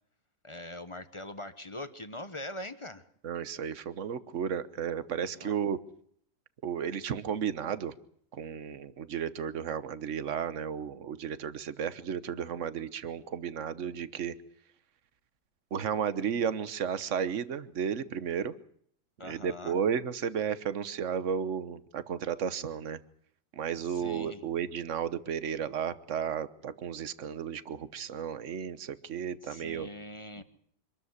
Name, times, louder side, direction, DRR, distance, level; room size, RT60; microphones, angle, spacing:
voice 1, 0.4-3.0 5.3-5.6 19.2-19.8 23.8-24.4 29.4-30.4, left 1 dB, 20° left, 11 dB, 1.1 m, -42 dB
voice 2, 3.2-5.8 6.6-7.9 8.3-14.3 15.7-18.5 19.2-23.0 23.5-29.9 30.4-30.5, right 7 dB, 50° right, 15 dB, 1.3 m, -33 dB
25.5 x 13.5 x 9.8 m, 0.65 s
omnidirectional pair, 1.8 m